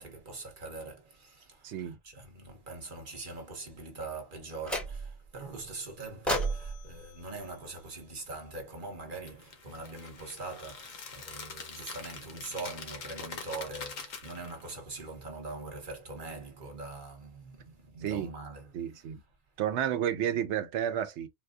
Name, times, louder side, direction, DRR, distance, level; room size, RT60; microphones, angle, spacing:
voice 1, 0.0-19.1, right 3 dB, 40° right, 1.2 m, -43 dB
voice 2, 1.6-2.0 17.9-18.3 18.7-19.2 19.6-21.3, right 10 dB, 65° right, 0.8 m, -31 dB
sound 1, 4.6-5.3 6.3-8.5, right 1 dB, ahead, 0.8 m, -35 dB
sound 2, 9.3-14.7, left 5 dB, 80° left, 1.3 m, -44 dB
4.0 x 2.3 x 2.5 m
omnidirectional pair, 1.3 m